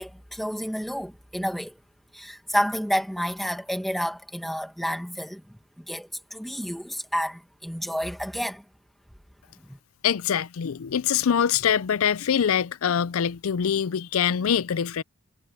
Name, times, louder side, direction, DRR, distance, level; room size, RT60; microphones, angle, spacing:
voice 1, 0.0-1.7 2.1-8.6 9.6-9.8, equal, ahead, 2.0 m, -30 dB
voice 2, 10.0-15.0, left 8 dB, 80° left, 0.5 m, -24 dB
head